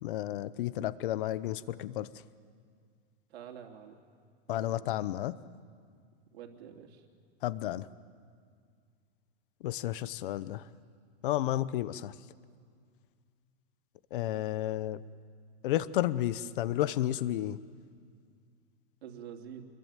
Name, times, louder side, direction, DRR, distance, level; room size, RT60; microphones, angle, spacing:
voice 1, 0.0-2.1 4.5-5.4 7.4-7.9 9.6-10.6 11.2-12.1 14.1-15.0 15.6-17.6, left 13 dB, 55° left, 17 dB, 0.9 m, -32 dB
voice 2, 3.3-3.9 4.5-4.8 6.3-7.0 19.0-19.6, right 8 dB, 70° right, 3 dB, 3.1 m, -47 dB
26.5 x 21.5 x 9.2 m, 2.1 s
supercardioid pair, 170°, 32 cm